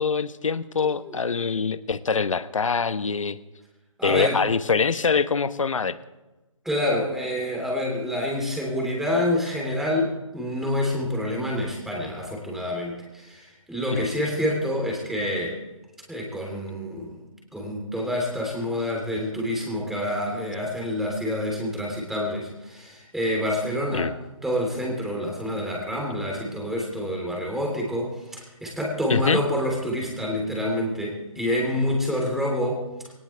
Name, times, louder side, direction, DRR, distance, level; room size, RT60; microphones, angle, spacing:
voice 1, 0.0-3.4 4.0-6.0 13.9-14.1 23.9-24.1 29.1-29.4, left 5 dB, 70° left, 12 dB, 1.2 m, -24 dB
voice 2, 0.8-1.1 4.0-4.4 6.7-15.6 16.1-17.2 17.5-24.1 24.4-32.8, left 1 dB, ahead, -1 dB, 3.5 m, -27 dB
20.5 x 19.0 x 3.4 m, 1.1 s
figure-of-eight pair, 155°, 17 cm